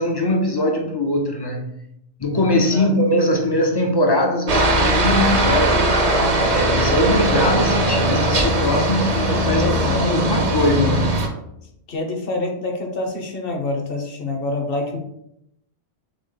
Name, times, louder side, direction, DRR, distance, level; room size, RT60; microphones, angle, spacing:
voice 1, 0.0-1.7 2.2-6.1 6.4-9.7 10.0-11.2, left 1 dB, 35° left, 1 dB, 0.4 m, -21 dB
Aircraft, 4.5-11.3, right 1 dB, 40° right, 0.6 m, -19 dB
voice 2, 9.5-10.1 11.9-15.0, left 2 dB, 55° left, 2 dB, 0.9 m, -26 dB
3.7 x 3.5 x 3.8 m, 0.79 s
omnidirectional pair, 1.3 m